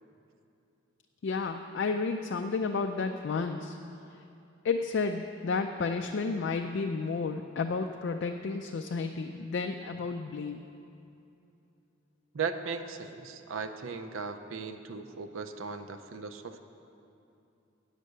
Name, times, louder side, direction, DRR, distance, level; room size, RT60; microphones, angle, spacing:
voice 1, 1.2-3.8 4.6-10.6, left 4 dB, 60° left, 5 dB, 0.4 m, -32 dB
voice 2, 12.3-16.6, right 5 dB, 80° right, 8 dB, 0.6 m, -37 dB
8.2 x 6.4 x 7.9 m, 2.7 s
head